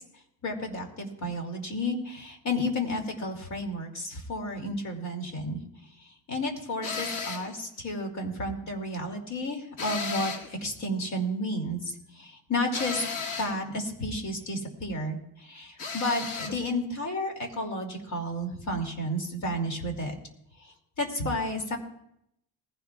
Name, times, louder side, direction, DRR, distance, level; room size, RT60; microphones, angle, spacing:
voice 1, 0.4-5.6 6.3-13.0 13.4-20.1 21.0-21.8, left 1 dB, 55° left, 3 dB, 2.6 m, -32 dB
sound 1, 6.8-7.5 9.8-10.6 12.7-13.6 15.8-16.6, left 5 dB, 70° left, 1.8 m, -34 dB
19.5 x 15.5 x 2.3 m, 0.77 s
cardioid pair, 140°, 34 cm